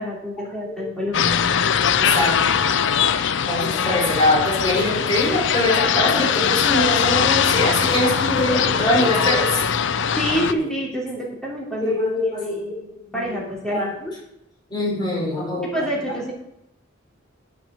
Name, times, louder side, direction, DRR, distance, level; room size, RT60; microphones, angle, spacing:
voice 1, 0.0-1.4 10.2-11.9 12.3-14.1 15.7-16.3, equal, 5° left, -3 dB, 2.9 m, -28 dB
sound 1, 1.1-10.5, left 7 dB, 60° left, 0.5 m, -21 dB
voice 2, 2.0-2.5 3.5-9.6 10.4-10.7 11.8-12.8 13.1-13.4 13.7-13.9 14.7-16.2, left 1 dB, 20° left, -5 dB, 4.8 m, -23 dB
9.5 x 6.1 x 7.5 m, 0.81 s
head